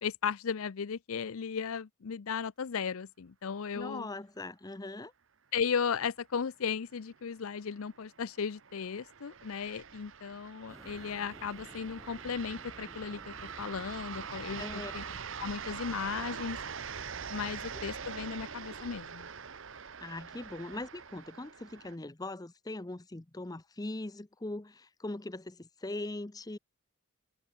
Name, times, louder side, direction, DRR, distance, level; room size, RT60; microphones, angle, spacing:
voice 1, 0.0-4.1 5.5-15.0 15.4-16.6 17.3-19.3, left 6 dB, 70° left, 0.5 m, -36 dB
voice 2, 3.7-5.1 14.6-14.9 20.0-26.6, left 2 dB, 15° left, 0.6 m, -40 dB
sound 1, 7.1-22.0, right 6 dB, 60° right, 1.0 m, -44 dB
sound 2, 10.7-15.8, equal, 15° right, 2.3 m, -54 dB
head